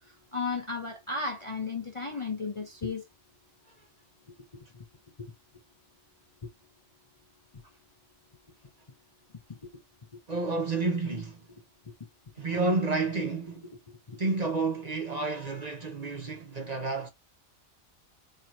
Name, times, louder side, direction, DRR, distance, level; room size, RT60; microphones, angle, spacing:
voice 1, 0.1-3.0 4.5-4.8 5.2-5.3 10.1-10.2 13.9-14.2, left 4 dB, 35° left, 0.6 m, -35 dB
voice 2, 10.3-11.4 12.4-13.7 14.2-17.1, right 3 dB, 40° right, 0.8 m, -30 dB
4.3 x 3.1 x 2.6 m
omnidirectional pair, 1.2 m